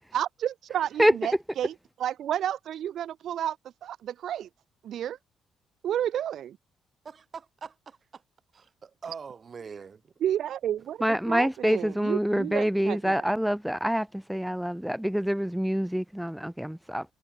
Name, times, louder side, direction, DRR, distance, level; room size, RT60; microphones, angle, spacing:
voice 1, 0.1-3.6 3.8-4.5 4.8-5.2 5.8-6.6 10.2-13.3, right 10 dB, 70° right, 0.5 m, -31 dB
voice 2, 7.0-8.2 8.5-10.1, right 6 dB, 40° right, 7.4 m, -43 dB
voice 3, 11.0-17.0, equal, ahead, 0.7 m, -26 dB
cardioid pair, 90°, 0 cm